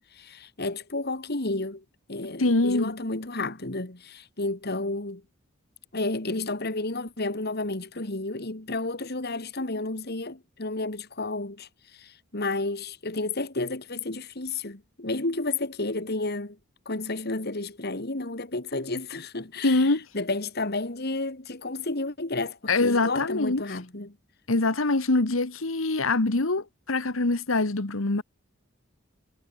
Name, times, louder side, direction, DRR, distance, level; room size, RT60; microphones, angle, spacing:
voice 1, 0.0-5.2 5.9-11.7 12.0-16.6 16.9-19.9 20.1-24.2, left 2 dB, 50° left, 2.3 m, -31 dB
voice 2, 2.4-2.9 19.6-20.0 22.7-23.8 24.5-28.2, left 2 dB, 80° left, 1.6 m, -24 dB
head